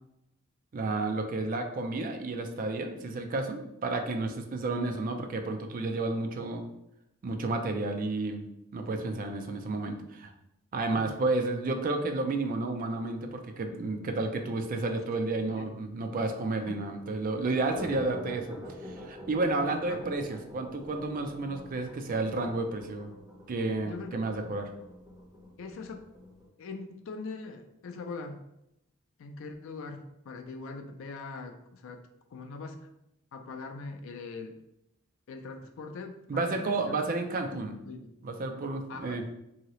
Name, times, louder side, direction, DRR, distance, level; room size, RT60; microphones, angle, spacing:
voice 1, 0.7-6.6 7.2-8.4 8.7-10.3 10.7-23.1 23.5-24.7 36.3-37.8 38.2-39.2, right 2 dB, 45° right, 5 dB, 0.4 m, -31 dB
voice 2, 10.8-11.2 15.3-15.7 16.7-16.8 19.8-20.0 23.8-24.4 25.6-26.1 26.6-28.4 29.2-32.9 33.3-34.6 35.3-36.9 37.4-37.6 37.8-38.1 38.9-39.3, left 3 dB, 70° left, 6 dB, 0.4 m, -42 dB
sound 1, 17.4-26.4, equal, 20° right, 1.2 m, -45 dB
2.8 x 2.8 x 3.0 m, 0.84 s
head